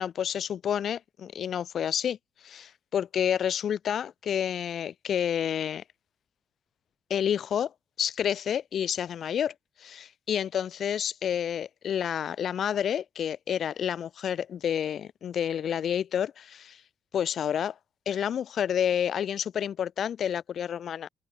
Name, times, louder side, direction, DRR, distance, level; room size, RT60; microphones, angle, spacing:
voice 1, 0.0-2.2 2.4-5.8 7.1-7.7 8.0-9.5 9.8-16.8 17.1-17.7 18.1-21.1, left 9 dB, 60° left, 0.6 m, -29 dB
open air
cardioid pair, 110°, 0 cm